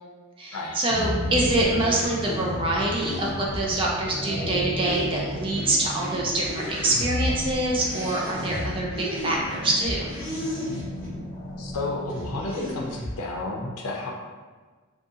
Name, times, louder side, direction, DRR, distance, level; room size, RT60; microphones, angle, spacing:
voice 1, 0.4-10.1, right 2 dB, 25° right, -3 dB, 0.4 m, -25 dB
sound 1, 0.9-12.5, left 1 dB, 50° left, 0.8 m, -36 dB
sound 2, 1.0-11.1 11.7-13.2, left 1 dB, 35° left, 1.1 m, -34 dB
voice 2, 11.6-14.1, left 2 dB, 90° left, -1 dB, 0.5 m, -31 dB
2.5 x 2.3 x 2.6 m, 1.4 s
head